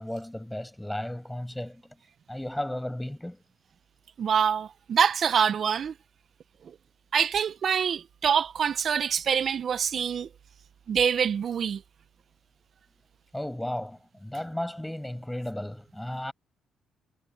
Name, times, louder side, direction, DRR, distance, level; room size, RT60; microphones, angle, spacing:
voice 1, 0.0-2.0 2.3-3.4 13.3-16.3, left 1 dB, 5° left, 6.2 m, -34 dB
voice 2, 4.2-5.9 7.1-10.3 10.9-11.8, right 7 dB, 55° right, 0.5 m, -25 dB
cardioid pair, 90°, 0 cm